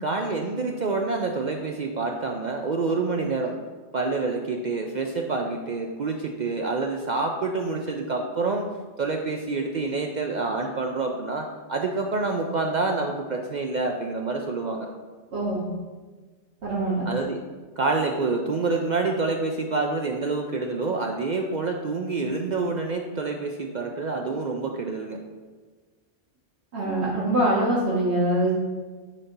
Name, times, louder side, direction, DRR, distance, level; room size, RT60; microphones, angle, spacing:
voice 1, 0.0-3.6 3.9-8.7 9.0-14.9 17.1-17.4 17.8-25.2, right 3 dB, 55° right, 2 dB, 0.5 m, -27 dB
voice 2, 15.3-15.6 16.6-17.1 26.7-28.5, right 1 dB, 70° right, -7 dB, 1.5 m, -23 dB
8.2 x 2.8 x 5.8 m, 1.4 s
omnidirectional pair, 1.1 m